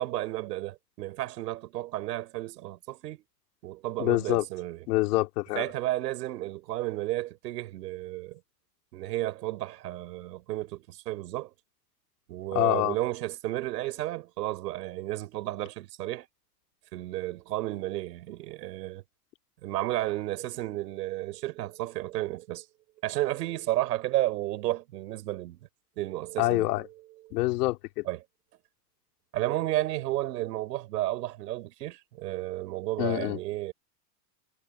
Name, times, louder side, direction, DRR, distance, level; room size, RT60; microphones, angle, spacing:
voice 1, 0.0-3.2 3.6-4.9 5.6-8.4 8.9-11.5 12.3-16.3 16.9-19.0 19.6-22.7 23.0-25.7 26.0-26.9 27.2-27.4 28.1-28.2 29.3-33.7, right 16 dB, 85° right, 5.3 m, -32 dB
voice 2, 4.0-4.4 4.9-5.6 12.5-13.0 26.4-26.8 27.3-28.0 33.0-33.4, left 20 dB, 70° left, 3.2 m, -26 dB
supercardioid pair, 145°, 48 cm